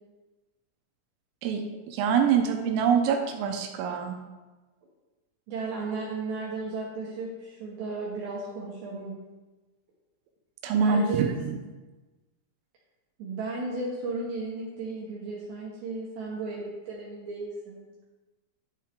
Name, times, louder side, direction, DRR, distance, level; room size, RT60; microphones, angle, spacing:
voice 1, 1.4-4.2 10.6-11.5, right 6 dB, 85° right, 4 dB, 3.4 m, -25 dB
voice 2, 5.5-9.3 10.8-11.3 13.2-17.8, right 3 dB, 65° right, -5 dB, 3.3 m, -34 dB
11.0 x 7.3 x 3.7 m, 1.2 s
omnidirectional pair, 5.8 m